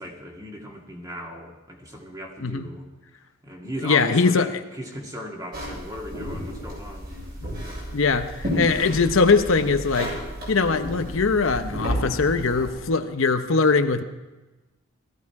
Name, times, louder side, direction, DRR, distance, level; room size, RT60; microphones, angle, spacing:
voice 1, 0.0-2.9 3.4-7.2, equal, 15° right, 0 dB, 2.2 m, -37 dB
voice 2, 3.8-4.6 7.9-10.2 10.5-14.0, left 4 dB, 70° left, 8 dB, 0.8 m, -21 dB
sound 1, 5.5-12.7, equal, 45° right, 7.3 m, -32 dB
18.0 x 14.5 x 4.7 m, 1.2 s
head